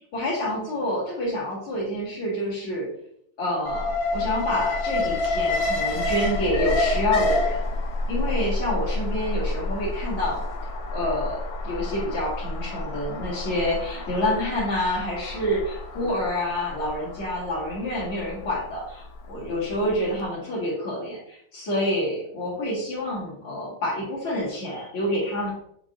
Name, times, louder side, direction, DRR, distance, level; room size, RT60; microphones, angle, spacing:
voice 1, 0.1-2.9 3.4-7.6 8.1-10.4 10.9-25.5, left 1 dB, 80° left, -8 dB, 2.8 m, -28 dB
Alarm, 3.6-19.8 20.1-20.2, left 2 dB, 60° left, 1.1 m, -29 dB
6.4 x 6.0 x 2.6 m, 0.71 s
omnidirectional pair, 2.3 m